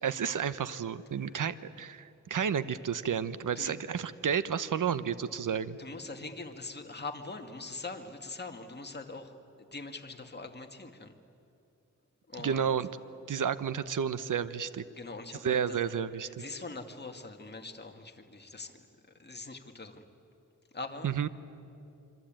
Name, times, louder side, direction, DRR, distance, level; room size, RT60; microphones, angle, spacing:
voice 1, 0.0-5.8 12.4-12.9 13.3-14.8 15.3-16.4 21.0-21.3, right 7 dB, 80° right, 14 dB, 1.0 m, -31 dB
voice 2, 5.8-9.3 9.7-11.1 12.3-12.6 15.0-15.8 16.4-18.7 19.2-20.0 20.7-21.1, left 3 dB, 35° left, 4 dB, 2.2 m, -42 dB
26.0 x 25.5 x 9.0 m, 2.7 s
wide cardioid pair, 85°, 31 cm